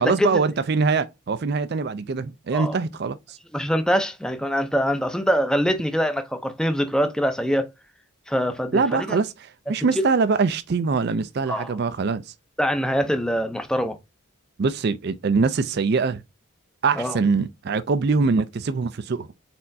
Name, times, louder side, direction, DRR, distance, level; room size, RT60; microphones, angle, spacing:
voice 1, 0.0-3.4 8.7-12.3 14.6-16.2 16.8-19.3, right 4 dB, 50° right, 0.4 m, -23 dB
voice 2, 3.5-7.7 8.3-9.2 11.5-11.7 12.6-14.0 17.0-17.2, equal, 5° left, 0.5 m, -24 dB
4.3 x 4.2 x 2.6 m
head